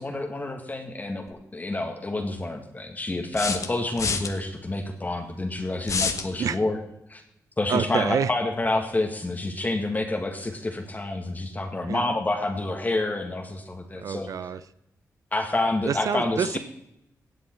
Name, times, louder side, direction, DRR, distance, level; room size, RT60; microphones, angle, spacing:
voice 1, 0.0-6.8 7.1-7.2 7.6-14.3 15.3-16.6, left 2 dB, 30° left, 3 dB, 1.7 m, -28 dB
sound 1, 1.3-1.4 3.3-4.3 5.8-6.3, left 5 dB, 60° left, 1.2 m, -27 dB
voice 2, 7.7-8.3 11.9-12.1 13.9-14.6 15.9-16.6, right 7 dB, 65° right, 15 dB, 0.5 m, -27 dB
16.5 x 7.7 x 4.5 m, 0.84 s
cardioid pair, 70°, 6 cm